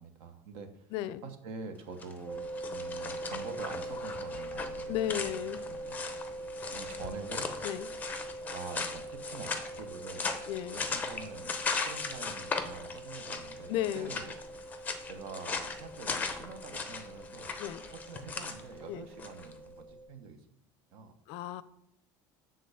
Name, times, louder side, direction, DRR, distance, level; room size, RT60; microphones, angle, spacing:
voice 1, 0.0-0.9 1.2-2.4 2.7-5.4 5.7-6.0 6.7-7.5 8.5-10.4 10.7-14.3 15.1-20.4 20.9-21.2, right 5 dB, 60° right, 8 dB, 1.1 m, -46 dB
voice 2, 0.9-1.2 4.9-5.6 7.6-7.9 10.5-10.8 13.7-14.1 17.6-17.8 18.9-19.1 21.3-21.6, left 12 dB, 60° left, 16 dB, 0.4 m, -34 dB
sound 1, 1.9-19.5, left 4 dB, 15° left, 0.7 m, -39 dB
sound 2, 2.3-20.1, right 2 dB, 15° right, 1.9 m, -43 dB
7.7 x 3.8 x 6.6 m, 0.73 s
cardioid pair, 165°, 10 cm